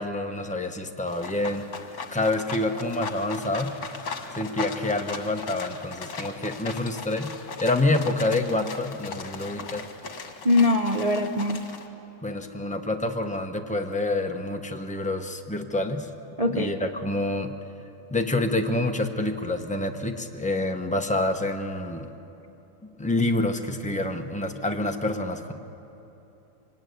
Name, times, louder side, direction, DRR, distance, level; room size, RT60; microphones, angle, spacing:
voice 1, 0.0-1.7 2.1-3.7 4.4-7.3 7.6-9.9 12.2-16.1 16.5-17.5 18.1-22.1 23.0-25.5, left 2 dB, 10° left, 4 dB, 0.4 m, -27 dB
sound 1, 1.1-11.9, left 5 dB, 55° left, 2.0 m, -38 dB
voice 2, 10.4-11.6 16.4-16.7, left 2 dB, 70° right, 3 dB, 0.3 m, -22 dB
24.0 x 19.5 x 9.4 m, 2.9 s
omnidirectional pair, 2.0 m